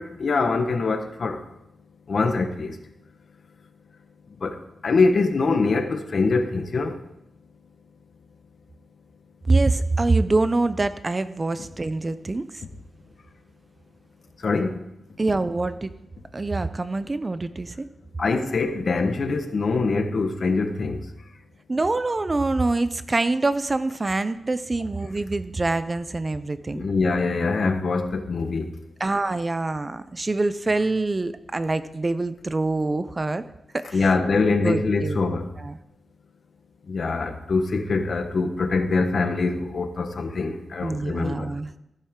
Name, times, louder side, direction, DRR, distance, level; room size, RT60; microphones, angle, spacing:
voice 1, 0.0-1.4 2.1-2.7 4.4-4.5 4.8-6.9 14.4-14.7 18.2-21.0 26.7-28.7 33.9-35.4 36.9-41.5, left 3 dB, 55° left, 1.2 m, -23 dB
voice 2, 9.4-12.6 15.2-15.9 16.3-17.9 21.7-26.8 29.0-33.4 33.7-34.1 34.4-35.2 35.6-35.8 40.8-41.7, right 2 dB, 25° right, 0.5 m, -25 dB
15.0 x 8.6 x 3.7 m
wide cardioid pair, 110°, 0 cm